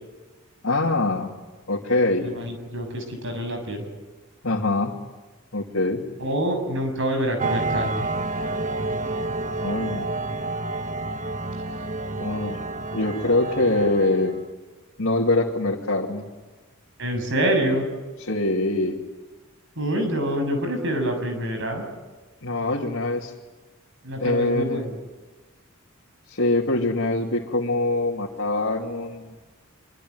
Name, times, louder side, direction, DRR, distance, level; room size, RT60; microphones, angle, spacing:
voice 1, 0.6-1.4 1.7-2.3 4.4-4.9 5.5-6.0 9.6-10.1 12.2-12.6 12.9-14.4 15.0-16.3 18.2-19.0 22.4-23.3 24.2-24.9 26.3-29.3, left 2 dB, 65° left, -2 dB, 2.7 m, -24 dB
voice 2, 2.2-3.8 6.2-8.1 17.0-17.9 19.8-21.8 24.0-25.0, right 1 dB, 60° right, 6 dB, 6.9 m, -26 dB
sound 1, 7.4-14.4, right 2 dB, 35° right, 1.1 m, -29 dB
26.0 x 24.0 x 9.5 m, 1.2 s
head